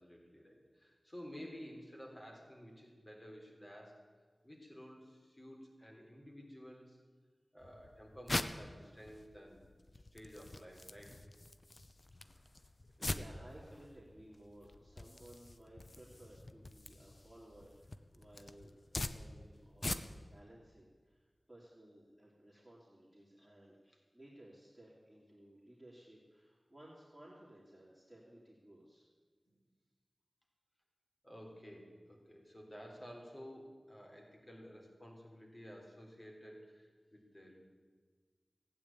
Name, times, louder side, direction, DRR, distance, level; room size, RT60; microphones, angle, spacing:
voice 1, 0.0-4.0 4.4-7.0 7.5-9.6 10.0-11.2 22.5-22.6 23.4-23.5 23.9-24.0 31.2-37.6, equal, 25° left, 0 dB, 3.7 m, -53 dB
sound 1, 7.6-20.4, left 2 dB, 45° left, 0.7 m, -44 dB
voice 2, 12.2-12.5 12.8-23.7 24.1-29.0, right 1 dB, 5° right, -7 dB, 3.1 m, -58 dB
15.5 x 9.1 x 8.6 m, 1.5 s
wide cardioid pair, 75°, 0 cm